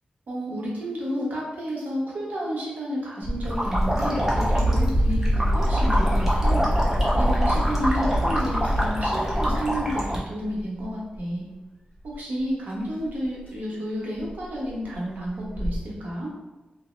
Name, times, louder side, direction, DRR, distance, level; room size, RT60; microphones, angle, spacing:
voice 1, 0.3-6.7 7.2-11.5 12.0-16.3, equal, 85° right, -4 dB, 0.9 m, -31 dB
sound 1, 3.2-9.7 10.4-10.9 11.2-11.3 12.0-12.1 13.1-13.2 13.5-13.6 14.2-14.4 14.7-14.8 14.9-15.0 15.4-15.8, equal, 55° left, 1.4 m, -24 dB
sound 2, 3.4-10.2, equal, 15° right, 0.6 m, -26 dB
2.9 x 2.0 x 3.0 m, 1.1 s
wide cardioid pair, 175°, 3 cm